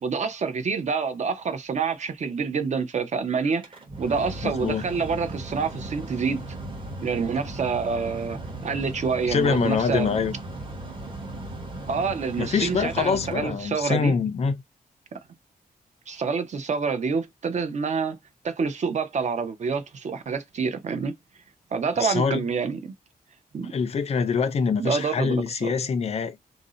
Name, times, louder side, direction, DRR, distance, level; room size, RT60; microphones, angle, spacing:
voice 1, 0.0-6.4 7.0-10.2 11.9-14.1 15.1-15.2 16.1-18.2 18.4-21.1 21.7-22.9 23.5-23.7 24.8-25.7, right 5 dB, 50° right, 0.5 m, -27 dB
Mechanical fan, 3.5-14.1, right 1 dB, 35° right, 0.9 m, -37 dB
voice 2, 4.4-4.8 9.3-10.3 12.4-14.5 22.0-22.4 23.7-26.4, left 5 dB, 45° left, 0.4 m, -25 dB
2.6 x 2.0 x 3.7 m
wide cardioid pair, 155°, 16 cm